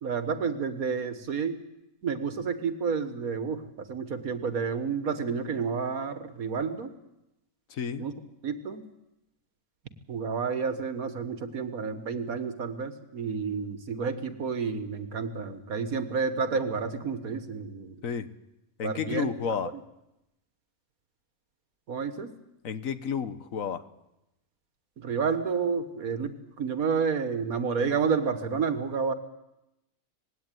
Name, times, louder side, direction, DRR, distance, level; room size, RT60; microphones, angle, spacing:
voice 1, 0.0-1.6 2.0-6.9 8.0-8.1 8.4-8.8 10.1-18.0 18.8-19.6 21.9-22.3 25.0-29.1, right 5 dB, 75° right, 10 dB, 1.9 m, -30 dB
voice 2, 7.7-8.1 18.0-18.3 18.8-19.7 22.6-23.8, left 7 dB, 70° left, 12 dB, 1.4 m, -31 dB
20.0 x 17.0 x 9.2 m, 0.91 s
omnidirectional pair, 1.5 m